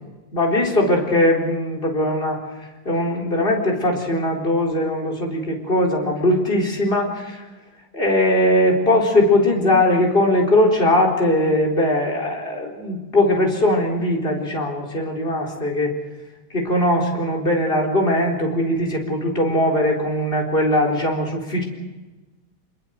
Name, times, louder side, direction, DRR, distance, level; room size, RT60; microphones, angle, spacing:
voice 1, 0.3-2.4 2.8-7.5 7.9-16.0 16.5-21.6, left 1 dB, 25° left, -1 dB, 4.3 m, -20 dB
25.0 x 24.0 x 6.5 m, 1.2 s
omnidirectional pair, 2.3 m